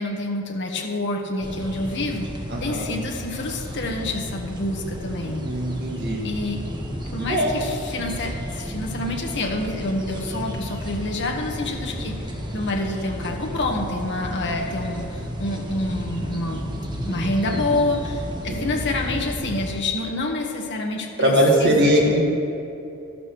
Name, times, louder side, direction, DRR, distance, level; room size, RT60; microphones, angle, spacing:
voice 1, 0.0-2.3 2.6-5.5 6.2-6.6 7.1-16.7 17.1-22.2, left 2 dB, 55° left, 1 dB, 1.3 m, -27 dB
sound 1, 1.4-19.7, equal, 20° right, 1.1 m, -32 dB
voice 2, 2.5-2.9 5.2-6.2 7.3-7.5 18.5-18.7 21.2-22.2, equal, 50° right, -2 dB, 1.9 m, -20 dB
13.0 x 12.0 x 3.1 m, 2.7 s
head